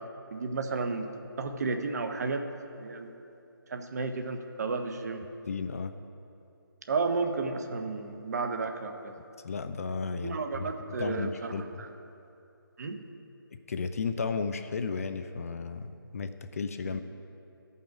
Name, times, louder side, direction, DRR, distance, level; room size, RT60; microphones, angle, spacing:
voice 1, 0.3-1.0 1.4-2.4 2.8-3.1 3.7-5.2 6.9-9.1 10.2-11.9 12.8-13.0 16.8-17.0, right 4 dB, 45° right, 6 dB, 0.7 m, -32 dB
voice 2, 5.5-5.9 9.4-10.7 11.0-11.8 13.7-17.0, left 5 dB, 40° left, 9 dB, 0.4 m, -34 dB
13.5 x 5.5 x 4.8 m, 2.7 s
figure-of-eight pair, 150°, 12 cm